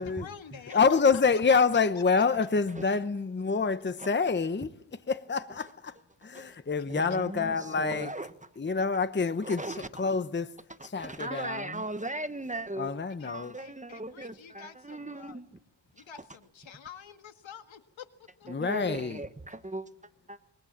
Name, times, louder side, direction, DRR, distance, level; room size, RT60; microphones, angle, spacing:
voice 1, 0.0-1.0 6.4-6.6 7.1-7.4 13.1-15.4 15.9-18.5, left 7 dB, 75° left, 1.9 m, -49 dB
voice 2, 0.7-6.0 6.2-8.1 8.6-10.5 10.8-11.8 12.8-13.6 18.5-19.2, left 5 dB, 25° left, 0.9 m, -27 dB
voice 3, 6.9-8.3 9.4-9.9 11.0-12.9 13.2-15.5 18.5-19.8, right 2 dB, 15° right, 1.3 m, -38 dB
25.5 x 23.0 x 7.4 m
wide cardioid pair, 105°, 46 cm